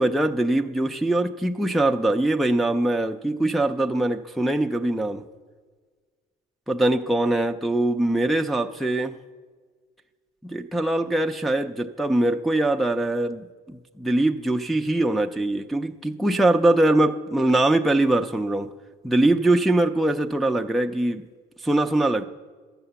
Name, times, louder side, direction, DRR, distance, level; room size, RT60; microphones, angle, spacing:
voice 1, 0.0-5.2 6.7-9.1 10.4-18.7 19.0-21.2 21.6-22.2, right 1 dB, ahead, 3 dB, 0.4 m, -22 dB
12.0 x 8.1 x 6.9 m, 1.5 s
cardioid pair, 110°, 17 cm